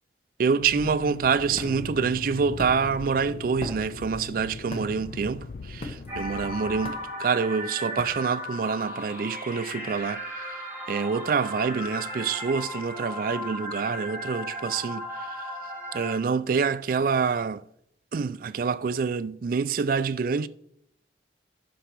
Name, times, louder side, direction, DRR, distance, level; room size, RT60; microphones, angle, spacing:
voice 1, 0.4-15.5 15.9-17.6 18.1-20.5, right 5 dB, 50° right, 0.3 m, -27 dB
Accelerating revving vroom, 0.6-6.8, left 4 dB, 55° left, 0.4 m, -39 dB
sound 1, 1.2-9.1, left 1 dB, 35° left, 1.3 m, -42 dB
sound 2, 6.1-16.2, equal, 10° right, 2.5 m, -36 dB
10.0 x 4.9 x 6.0 m
head